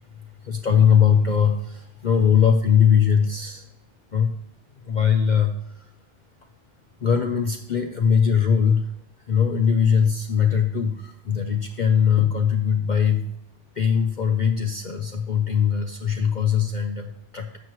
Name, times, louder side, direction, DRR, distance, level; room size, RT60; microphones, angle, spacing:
voice 1, 0.4-3.7 4.1-4.3 4.8-5.9 7.0-8.9 9.3-13.2 13.7-17.6, left 7 dB, 50° left, 5 dB, 0.6 m, -20 dB
12.0 x 7.5 x 3.1 m, 0.76 s
omnidirectional pair, 1.2 m